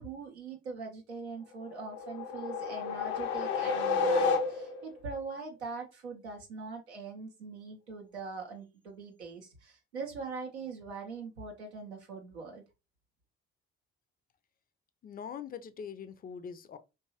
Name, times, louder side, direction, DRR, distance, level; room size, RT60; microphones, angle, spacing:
voice 1, 0.0-12.6, right 4 dB, 85° right, 0.5 m, -42 dB
sound 1, 1.7-5.0, left 4 dB, 75° left, 0.6 m, -31 dB
voice 2, 15.0-16.8, left 7 dB, 30° left, 0.4 m, -42 dB
2.8 x 2.3 x 2.7 m
figure-of-eight pair, 40°, 32 cm